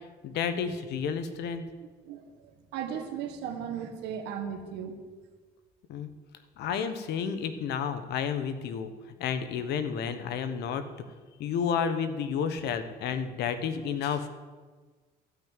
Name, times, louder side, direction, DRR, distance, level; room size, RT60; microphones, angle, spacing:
voice 1, 0.2-1.7 5.9-6.1 6.6-8.9 9.2-10.8 11.4-14.3, left 7 dB, 75° left, 10 dB, 1.2 m, -31 dB
voice 2, 2.0-5.0, right 8 dB, 90° right, 6 dB, 1.6 m, -37 dB
13.0 x 6.1 x 9.0 m, 1.4 s
cardioid pair, 110°, 17 cm